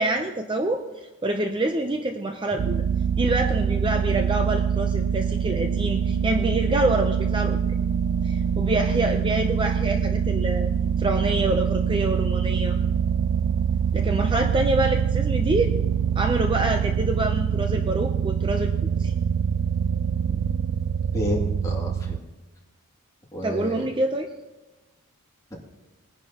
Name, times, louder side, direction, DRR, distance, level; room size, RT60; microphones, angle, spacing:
voice 1, 0.0-2.8 3.2-7.6 8.2-10.7 11.0-12.8 13.9-15.7 16.2-18.7 19.0-19.1 23.4-24.3, right 2 dB, 20° right, 4 dB, 0.6 m, -26 dB
sound 1, 2.6-22.2, right 7 dB, 70° right, 0.4 m, -24 dB
voice 2, 21.1-22.3 23.3-23.8, equal, 15° left, -2 dB, 2.3 m, -30 dB
21.0 x 10.5 x 2.9 m, 1.1 s
head